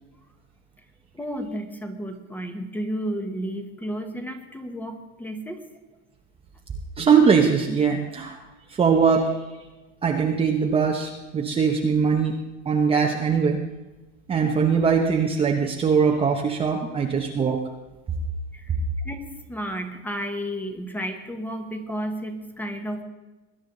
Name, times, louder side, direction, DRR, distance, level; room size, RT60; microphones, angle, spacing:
voice 1, 1.1-5.6 18.5-18.7 19.0-23.0, equal, 5° left, 6 dB, 1.3 m, -32 dB
voice 2, 7.0-8.4 8.7-9.4 10.0-12.3 12.7-13.6 14.3-17.6, right 6 dB, 15° right, 1 dB, 0.9 m, -21 dB
21.0 x 10.0 x 4.0 m, 1.1 s
supercardioid pair, 140°, 38 cm